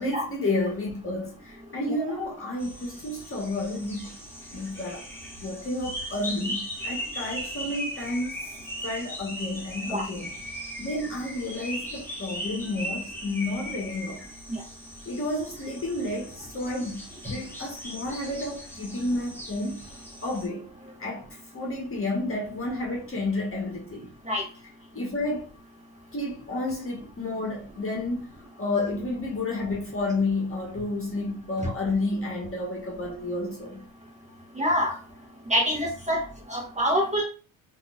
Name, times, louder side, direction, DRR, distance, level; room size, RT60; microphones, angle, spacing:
voice 1, 0.0-4.2 4.5-5.0 5.4-8.4 8.8-10.3 10.8-14.3 15.0-24.1 24.9-25.5 26.1-28.3 28.6-33.8, left 2 dB, 30° left, 1.5 m, -31 dB
sound 1, 2.6-20.5, equal, 5° left, 1.3 m, -38 dB
voice 2, 34.6-35.0 35.5-36.2 36.5-37.2, equal, 15° right, 1.5 m, -25 dB
3.6 x 3.0 x 2.5 m
supercardioid pair, 80°, 45 cm